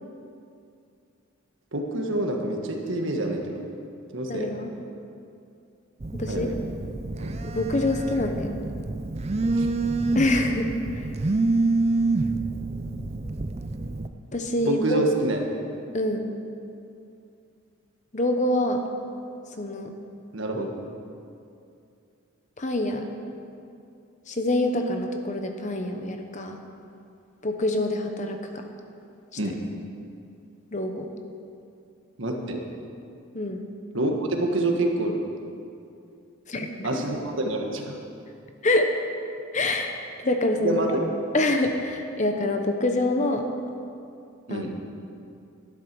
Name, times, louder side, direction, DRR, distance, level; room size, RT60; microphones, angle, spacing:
voice 1, 1.7-3.6 4.1-4.6 6.3-6.5 7.2-7.4 9.5-9.7 14.6-15.4 20.3-20.7 29.4-29.6 32.2-32.6 33.9-35.3 36.8-38.0 40.6-41.0 44.5-44.7, right 2 dB, 65° right, 2 dB, 1.5 m, -27 dB
voice 2, 4.3-4.7 6.1-6.5 7.5-8.6 10.1-11.1 14.3-15.0 15.9-16.3 18.1-18.8 19.5-19.9 22.6-23.1 24.3-26.6 27.4-28.7 30.7-31.1 33.3-33.6 36.5-37.0 38.6-38.9 39.5-39.9 40.2-40.8 41.3-43.5 44.5-44.8, left 1 dB, 35° left, 5 dB, 0.9 m, -26 dB
Telephone, 6.0-14.1, right 3 dB, 30° right, 0.5 m, -27 dB
12.0 x 11.5 x 6.1 m, 2.5 s
head